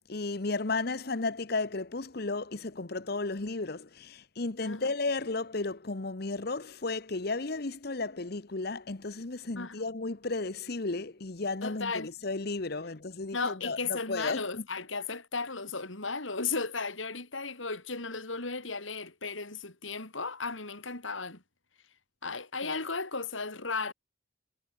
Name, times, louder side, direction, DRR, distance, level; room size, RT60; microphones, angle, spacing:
voice 1, 0.1-14.6 22.6-22.7, left 3 dB, 55° left, 1.0 m, -34 dB
voice 2, 4.6-4.9 9.6-9.9 11.6-12.1 13.3-21.4 22.2-23.9, left 4 dB, 85° left, 4.8 m, -35 dB
head